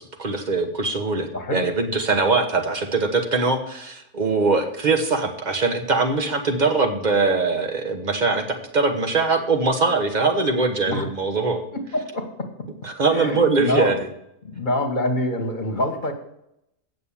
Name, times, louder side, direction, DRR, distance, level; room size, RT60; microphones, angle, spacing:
voice 1, 0.0-11.6 12.8-13.9, right 3 dB, 30° right, 6 dB, 1.2 m, -22 dB
voice 2, 1.3-1.7 10.9-11.1 11.7-12.5 13.1-14.0 14.4-16.1, left 1 dB, 35° left, 4 dB, 1.5 m, -26 dB
8.5 x 6.8 x 7.1 m, 0.81 s
omnidirectional pair, 1.6 m